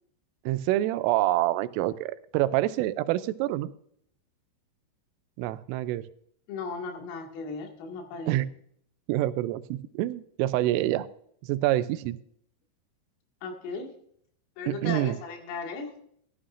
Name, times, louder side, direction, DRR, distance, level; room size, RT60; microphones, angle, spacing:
voice 1, 0.5-3.7 5.4-6.0 8.3-8.5 9.1-11.1 11.4-12.2 14.7-15.2, right 15 dB, 90° right, 14 dB, 3.2 m, -26 dB
voice 2, 6.5-8.3 13.4-13.9 14.6-15.9, left 4 dB, 85° left, 2 dB, 4.7 m, -36 dB
14.5 x 12.5 x 2.5 m, 0.66 s
omnidirectional pair, 5.7 m